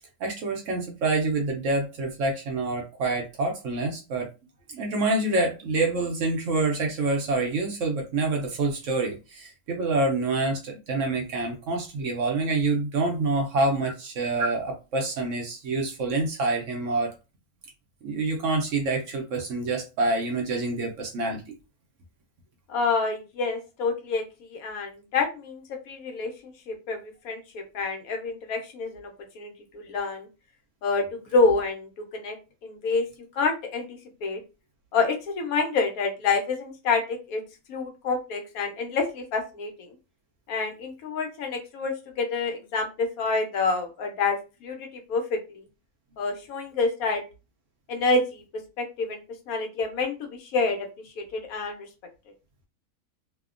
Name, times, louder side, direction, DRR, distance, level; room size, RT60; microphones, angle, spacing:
voice 1, 0.2-4.3 4.7-17.1 18.0-21.4, right 3 dB, 70° right, 0.8 m, -27 dB
voice 2, 22.7-24.2 24.5-29.1 29.4-30.3 30.8-32.4 32.6-33.0 33.4-33.9 34.2-34.4 34.9-37.4 37.7-39.7 40.5-44.8 45.1-45.4 46.2-47.2 47.9-48.4 48.8-49.2 49.5-50.8 51.2-51.9, left 4 dB, 75° left, 1.1 m, -27 dB
2.8 x 2.1 x 2.4 m
omnidirectional pair, 1.6 m